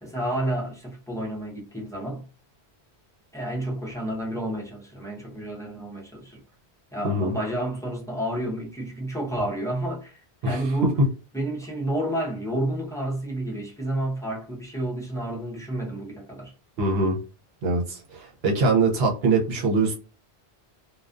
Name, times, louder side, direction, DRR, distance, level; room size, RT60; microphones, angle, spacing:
voice 1, 0.0-2.3 3.3-6.4 6.9-11.0 11.3-16.5, right 1 dB, 5° left, 0.5 m, -30 dB
voice 2, 10.4-10.9 16.8-17.2 17.6-19.9, right 3 dB, 70° right, 1.0 m, -23 dB
2.3 x 2.3 x 2.4 m
omnidirectional pair, 1.1 m